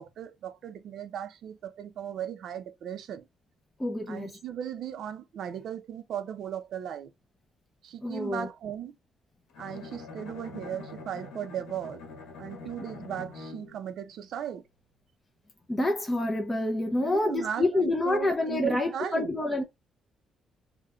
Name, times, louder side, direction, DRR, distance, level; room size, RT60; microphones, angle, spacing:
voice 1, 0.0-3.3 4.1-7.1 7.8-9.0 9.6-12.0 12.4-14.6 17.0-19.3, right 9 dB, 60° right, 0.5 m, -37 dB
voice 2, 3.8-4.3 8.0-8.5 15.7-19.6, left 2 dB, 10° left, 0.5 m, -27 dB
Bowed string instrument, 9.5-13.9, left 3 dB, 85° left, 1.0 m, -44 dB
3.7 x 2.2 x 4.2 m
cardioid pair, 170°, 0 cm